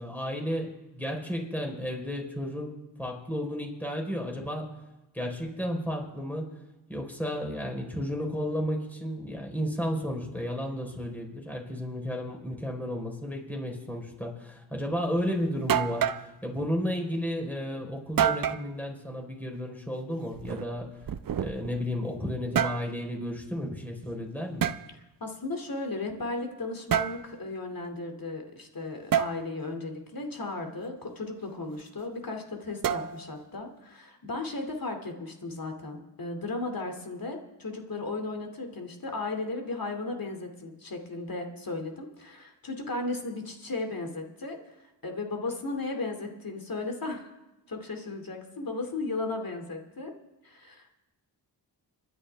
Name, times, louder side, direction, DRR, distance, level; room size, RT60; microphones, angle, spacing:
voice 1, 0.0-4.7 5.1-6.5 6.9-20.9 21.4-24.7, equal, 5° left, 0 dB, 4.1 m, -33 dB
sound 1, 15.2-15.3 15.7-16.3 18.2-18.7 20.3-21.8 22.3-22.9 24.6-24.8 26.9-27.2 29.1-29.3 32.8-33.4, right 9 dB, 50° right, 0.6 m, -27 dB
voice 2, 25.2-44.6 45.0-47.3 47.7-50.1 50.4-50.9, left 2 dB, 50° left, 4 dB, 2.5 m, -35 dB
26.5 x 10.5 x 3.4 m, 1.0 s
cardioid pair, 50°, 44 cm